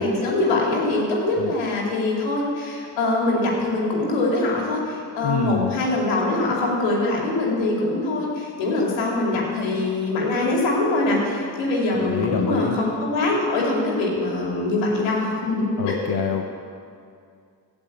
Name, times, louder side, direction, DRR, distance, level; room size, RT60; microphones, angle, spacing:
voice 1, 0.0-16.0, left 2 dB, 90° left, -3 dB, 2.6 m, -23 dB
voice 2, 5.2-5.7 12.1-12.8 15.8-16.5, left 6 dB, 60° left, 3 dB, 1.2 m, -25 dB
15.5 x 5.4 x 8.7 m, 2.4 s
supercardioid pair, 45°, 44 cm